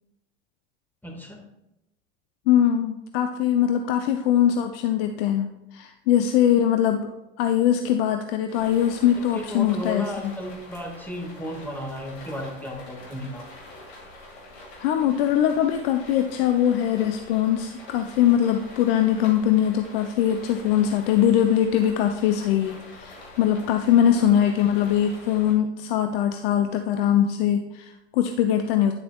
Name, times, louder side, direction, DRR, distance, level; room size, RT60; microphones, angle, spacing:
voice 1, 1.0-1.4 9.3-13.4, equal, 5° left, 1 dB, 1.7 m, -34 dB
voice 2, 2.5-7.1 7.4-10.3 14.8-28.9, left 10 dB, 65° left, 7 dB, 0.6 m, -22 dB
sound 1, 8.5-25.5, left 2 dB, 80° left, 2.0 m, -45 dB
9.2 x 6.7 x 2.3 m, 0.92 s
hypercardioid pair, 85°, 31 cm